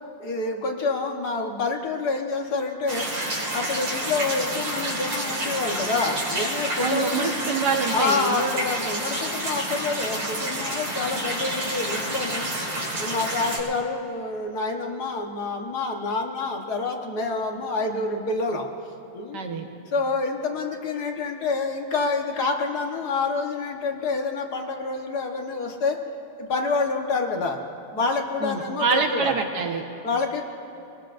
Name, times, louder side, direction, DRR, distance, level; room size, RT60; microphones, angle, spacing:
voice 1, 0.2-3.1 3.5-7.3 7.9-12.5 13.0-18.7 19.1-19.4 19.9-26.0 26.4-27.6 27.9-29.4 30.0-30.4, left 3 dB, 50° left, 2 dB, 1.7 m, -27 dB
sound 1, 2.9-13.6, right 1 dB, 75° right, 3.7 m, -29 dB
voice 2, 6.8-8.4 19.3-19.6 28.4-29.9, right 4 dB, 55° right, 3 dB, 1.7 m, -25 dB
24.5 x 19.5 x 2.6 m, 2.9 s
omnidirectional pair, 2.4 m